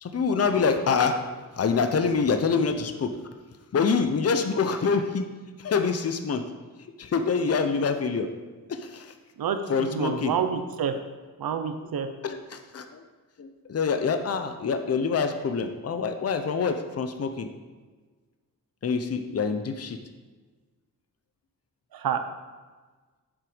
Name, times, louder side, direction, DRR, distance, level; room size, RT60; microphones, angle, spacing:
voice 1, 0.0-1.2 1.6-3.1 3.7-5.3 5.6-6.4 7.0-8.3 8.7-9.1 9.7-10.3 12.2-13.0 13.4-17.5 18.8-20.0, left 5 dB, 45° left, 7 dB, 0.7 m, -26 dB
voice 2, 9.4-11.0 11.4-12.1 21.9-22.2, right 7 dB, 80° right, 8 dB, 0.8 m, -28 dB
7.7 x 7.4 x 5.1 m, 1.3 s
wide cardioid pair, 145°, 35 cm